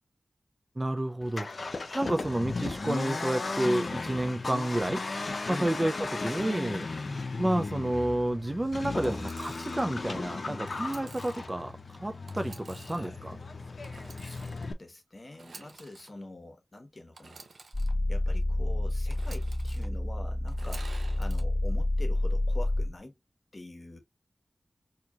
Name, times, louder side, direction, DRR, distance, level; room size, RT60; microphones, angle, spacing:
voice 1, 0.8-1.7 1.9-5.0 5.5-6.9 7.4-13.4, right 1 dB, 20° right, 0.4 m, -30 dB
Accelerating revving vroom, 1.2-14.7, left 3 dB, 60° left, 0.6 m, -36 dB
voice 2, 1.9-2.3 5.5-5.8 12.7-13.3 14.2-17.4 18.1-23.2 23.5-24.0, left 2 dB, 40° left, 1.1 m, -45 dB
Engine / Sawing, 9.0-9.9 10.7-11.5 12.3-13.1 13.8-14.7 15.3-16.1 17.1-17.9 19.1-19.9 20.5-21.4, right 3 dB, 85° right, 0.7 m, -50 dB
sound 1, 17.7-23.0, left 1 dB, 5° left, 1.5 m, -29 dB
4.4 x 2.8 x 2.4 m
wide cardioid pair, 95°, 0 cm